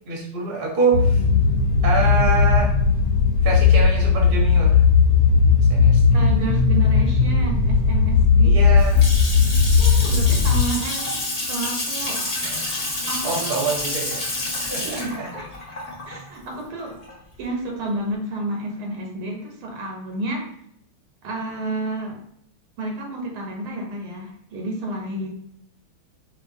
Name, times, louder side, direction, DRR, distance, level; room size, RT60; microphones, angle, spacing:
voice 1, 0.0-1.2 1.8-2.7 3.4-4.8 5.7-6.2 8.4-9.1 12.4-12.7 13.2-14.3 14.6-15.3, right 4 dB, 35° right, -2 dB, 1.0 m, -26 dB
sound 1, 0.9-10.6, left 5 dB, 80° left, 0.9 m, -17 dB
voice 2, 6.1-8.6 9.4-12.3 13.1-13.6 14.8-15.5 16.1-17.0 17.4-20.5 21.2-22.2 22.8-25.3, right 2 dB, 75° right, 1 dB, 1.8 m, -30 dB
Water tap faucet / Sink (filling or washing) / Splash splatter, 8.5-17.4, left 2 dB, 30° left, 1.3 m, -28 dB
6.8 x 2.6 x 2.8 m, 0.71 s
omnidirectional pair, 2.4 m